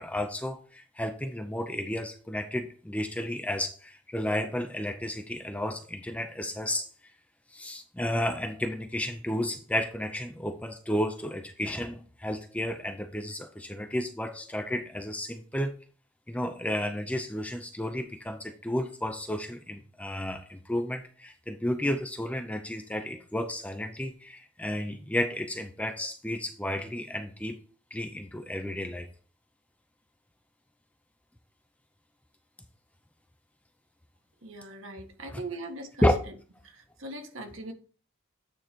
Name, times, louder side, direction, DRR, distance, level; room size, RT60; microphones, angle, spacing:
voice 1, 0.0-6.9 7.5-15.7 16.3-27.6 27.9-29.1 35.3-35.4 36.0-36.1, left 1 dB, 5° left, 0.6 m, -32 dB
voice 2, 34.4-36.1 36.6-37.7, right 2 dB, 70° right, 1.6 m, -40 dB
8.9 x 3.9 x 4.5 m
head